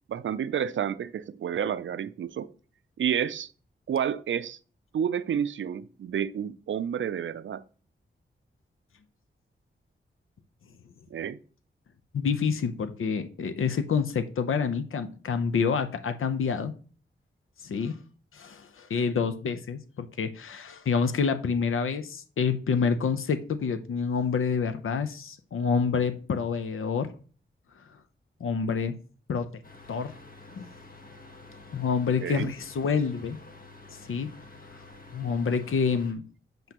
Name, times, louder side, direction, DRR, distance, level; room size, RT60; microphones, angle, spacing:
voice 1, 0.1-2.5 3.0-3.5 3.9-4.6 4.9-7.6 11.1-11.4 32.2-32.5, right 8 dB, 70° right, 0.4 m, -30 dB
voice 2, 12.1-16.7 17.6-18.0 18.3-27.1 28.4-28.9 29.3-29.5 29.9-30.1 30.5-30.7 31.7-33.4 34.0-34.3 35.1-36.2, left 6 dB, 80° left, 0.7 m, -27 dB
sound 1, 29.6-36.1, left 3 dB, 45° left, 1.1 m, -49 dB
7.9 x 5.2 x 2.9 m
wide cardioid pair, 75°, 21 cm